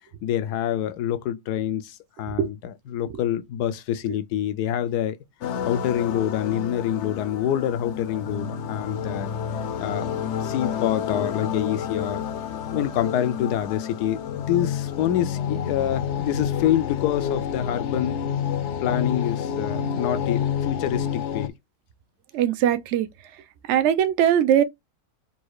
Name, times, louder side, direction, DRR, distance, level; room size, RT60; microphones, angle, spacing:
voice 1, 0.2-5.2 5.6-9.3 9.8-10.1 10.4-12.2 12.7-18.2 18.8-21.5, left 11 dB, 90° left, 1.2 m, -26 dB
sound 1, 5.4-21.5, left 8 dB, 65° left, 0.7 m, -29 dB
voice 2, 22.3-23.1 23.7-24.6, right 10 dB, 65° right, 0.7 m, -20 dB
4.1 x 2.3 x 4.7 m
omnidirectional pair, 1.6 m